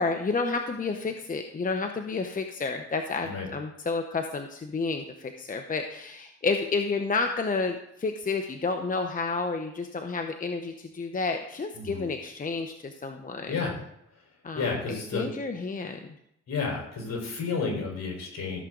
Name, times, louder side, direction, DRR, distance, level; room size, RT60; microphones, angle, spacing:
voice 1, 0.0-13.5 14.4-14.7 15.1-16.0, left 4 dB, 25° left, 5 dB, 0.9 m, -30 dB
voice 2, 11.7-12.0 13.5-13.8 14.5-15.3 16.5-18.6, left 4 dB, 60° left, 0 dB, 4.5 m, -31 dB
14.5 x 7.4 x 3.9 m, 0.77 s
cardioid pair, 90°, 30 cm